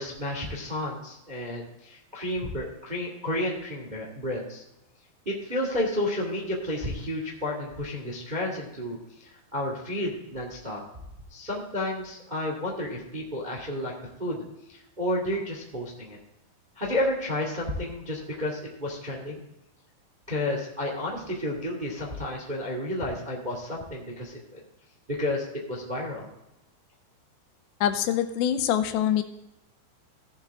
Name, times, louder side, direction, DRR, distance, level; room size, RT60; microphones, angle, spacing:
voice 1, 0.0-4.6 5.2-10.8 11.3-13.9 14.2-14.4 14.7-16.2 16.7-19.4 20.3-24.6 25.1-26.3, left 1 dB, 25° right, -1 dB, 1.0 m, -31 dB
voice 2, 27.8-29.2, left 10 dB, 85° left, 9 dB, 2.8 m, -24 dB
16.5 x 7.5 x 3.6 m, 0.92 s
omnidirectional pair, 5.1 m